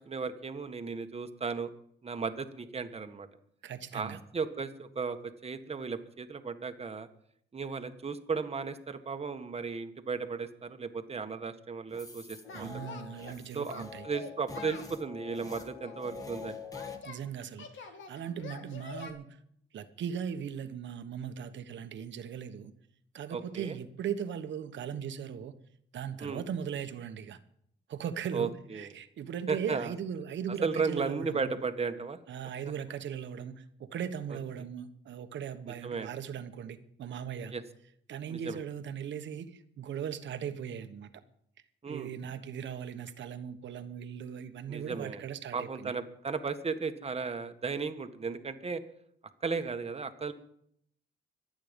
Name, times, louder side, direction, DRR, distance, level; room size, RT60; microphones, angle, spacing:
voice 1, 0.1-1.7 2.0-3.3 3.9-5.2 5.4-7.1 7.5-12.7 13.5-16.6 23.3-23.8 26.2-26.4 28.3-28.9 29.5-29.9 30.6-32.2 35.8-36.1 37.5-37.6 38.3-38.6 41.8-42.1 44.7-45.2 45.5-48.8 49.4-50.3, right 5 dB, 30° right, 8 dB, 1.5 m, -35 dB
voice 2, 3.6-4.2 12.5-14.1 17.0-19.4 19.7-22.7 23.1-25.5 25.9-27.4 27.9-31.5 32.3-37.5 38.1-41.1 41.9-45.9, right 8 dB, 65° right, 9 dB, 1.4 m, -39 dB
sound 1, 11.9-17.0, left 5 dB, 15° left, 2.1 m, -45 dB
Singing, 12.5-13.4 13.7-15.0 15.5-17.2 17.6-19.1, left 4 dB, 70° left, 2.4 m, -46 dB
24.5 x 8.9 x 5.3 m, 0.69 s
cardioid pair, 90°, 20 cm